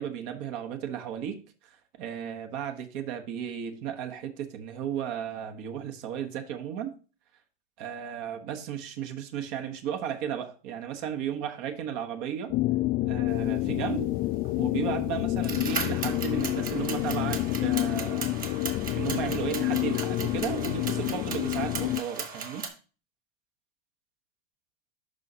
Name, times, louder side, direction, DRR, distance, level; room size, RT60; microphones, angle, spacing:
voice 1, 0.0-6.9 7.8-12.5 13.0-14.2 14.6-18.3 18.9-22.7, right 9 dB, 60° right, 1.3 m, -34 dB
sound 1, 12.5-22.0, left 16 dB, 40° left, 0.4 m, -28 dB
sound 2, 14.4-14.5 15.4-22.7, right 5 dB, 30° right, 1.5 m, -37 dB
11.5 x 4.0 x 2.9 m
hypercardioid pair, 100°, 30 cm